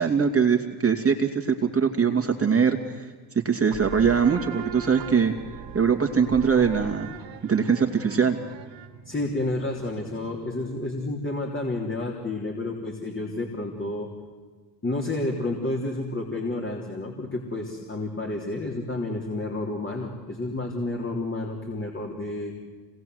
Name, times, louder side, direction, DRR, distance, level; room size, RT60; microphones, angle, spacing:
voice 1, 0.0-3.1 3.4-5.3 5.7-7.1 7.4-8.4, right 6 dB, 25° right, 3 dB, 2.5 m, -22 dB
sound 1, 3.7-11.0, right 6 dB, 60° right, 2.3 m, -40 dB
voice 2, 9.1-14.1 14.8-22.5, left 2 dB, 25° left, 0 dB, 3.6 m, -30 dB
26.0 x 19.5 x 8.0 m, 1.4 s
hypercardioid pair, 60°, 49 cm